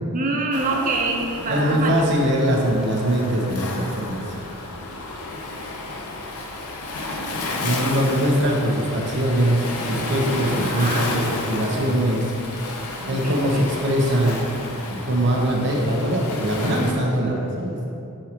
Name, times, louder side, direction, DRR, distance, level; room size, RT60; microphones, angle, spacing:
voice 1, 0.1-2.0 10.4-11.1 13.0-13.6, right 3 dB, 35° right, 1 dB, 0.5 m, -26 dB
Waves surf, 0.5-16.9, left 2 dB, 75° left, 0.7 m, -31 dB
voice 2, 1.5-4.2 7.6-12.3 13.1-14.4 14.9-17.8, equal, 55° right, -2 dB, 1.0 m, -22 dB
6.3 x 5.7 x 2.9 m, 2.6 s
head